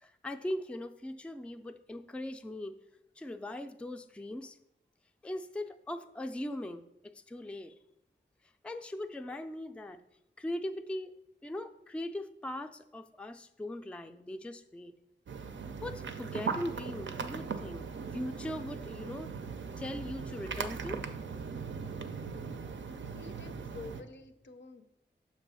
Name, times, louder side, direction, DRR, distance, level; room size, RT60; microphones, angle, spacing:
voice 1, 0.0-2.8 3.2-4.6 5.2-7.7 8.6-10.0 10.4-11.1 11.4-14.9 15.8-17.9 18.1-19.3 19.8-21.0, left 1 dB, 5° left, 8 dB, 0.3 m, -40 dB
sound 1, 15.3-24.0, right 5 dB, 75° right, 0.5 m, -39 dB
voice 2, 22.9-25.0, left 3 dB, 75° left, 8 dB, 0.6 m, -49 dB
6.8 x 3.0 x 5.5 m, 0.81 s
wide cardioid pair, 70°, 19 cm